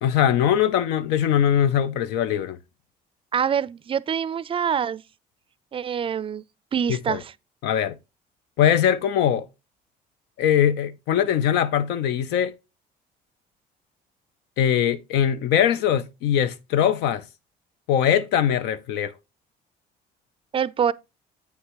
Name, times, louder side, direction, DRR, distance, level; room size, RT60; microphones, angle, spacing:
voice 1, 0.0-2.6 6.9-7.2 7.6-8.0 8.6-9.5 10.4-12.5 14.6-17.2 17.9-19.1, left 9 dB, 85° left, 0.5 m, -21 dB
voice 2, 3.3-5.0 5.7-6.4 6.7-7.3 20.5-20.9, right 8 dB, 30° right, 0.4 m, -25 dB
8.4 x 6.4 x 3.0 m
cardioid pair, 110°, 17 cm